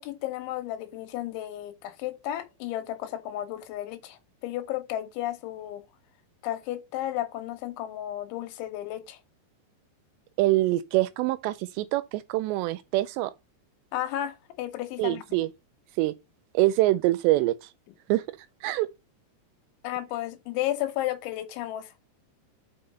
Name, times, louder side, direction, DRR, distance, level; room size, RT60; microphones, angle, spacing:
voice 1, 0.0-5.8 6.4-9.2 13.9-15.2 19.8-21.9, left 13 dB, 85° left, 3.5 m, -33 dB
voice 2, 10.4-13.3 15.0-15.5 16.0-16.1 16.5-17.7 18.1-18.2 18.6-18.9, right 17 dB, 85° right, 2.6 m, -24 dB
6.0 x 5.8 x 5.4 m
omnidirectional pair, 5.2 m